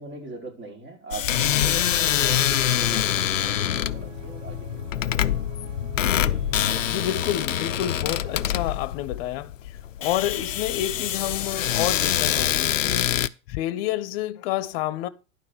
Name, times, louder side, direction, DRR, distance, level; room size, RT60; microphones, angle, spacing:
voice 1, 0.0-4.8, right 3 dB, 30° right, 4.9 m, -42 dB
sound 1, 1.1-13.3, left 10 dB, 85° left, 0.5 m, -25 dB
sound 2, 1.3-8.6, right 9 dB, 80° right, 0.9 m, -43 dB
voice 2, 5.8-6.3 6.8-13.2 13.5-15.1, left 13 dB, 50° left, 0.9 m, -29 dB
11.5 x 4.8 x 6.2 m
figure-of-eight pair, 90°, 37 cm